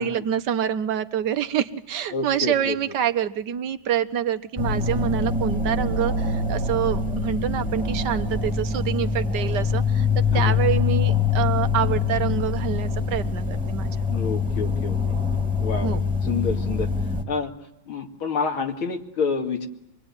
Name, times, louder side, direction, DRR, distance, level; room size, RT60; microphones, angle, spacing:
voice 1, 0.0-10.1 10.3-14.0 15.8-16.1, right 9 dB, 60° right, 9 dB, 1.7 m, -26 dB
voice 2, 2.1-2.8 10.3-10.5 14.1-15.0 15.6-16.9 17.3-17.5 17.9-19.7, left 5 dB, 85° left, 4 dB, 3.1 m, -28 dB
sound 1, 4.6-17.2, left 4 dB, 5° right, 2.1 m, -24 dB
27.0 x 20.5 x 9.7 m, 0.84 s
omnidirectional pair, 2.2 m